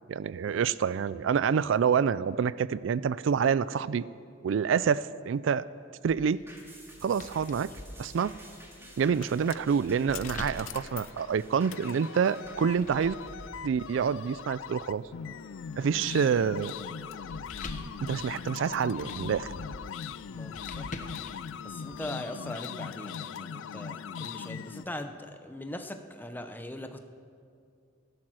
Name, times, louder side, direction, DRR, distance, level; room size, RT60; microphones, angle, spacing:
voice 1, 0.1-4.1 4.4-5.7 6.0-6.4 7.0-7.7 8.0-8.3 9.0-13.2 13.6-15.0 15.8-16.7 18.0-19.5, right 7 dB, 70° right, 18 dB, 0.3 m, -27 dB
sound 1, 6.0-11.9 12.4-22.0, left 2 dB, 40° left, 1.1 m, -47 dB
sound 2, 6.5-15.2 15.6-15.7, right 1 dB, 15° right, 2.2 m, -52 dB
sound 3, 8.6-24.9, left 7 dB, 75° left, 0.4 m, -41 dB
voice 2, 20.3-21.1 21.6-27.0, left 1 dB, 10° left, 6 dB, 0.8 m, -41 dB
16.0 x 12.0 x 6.2 m, 2.3 s
head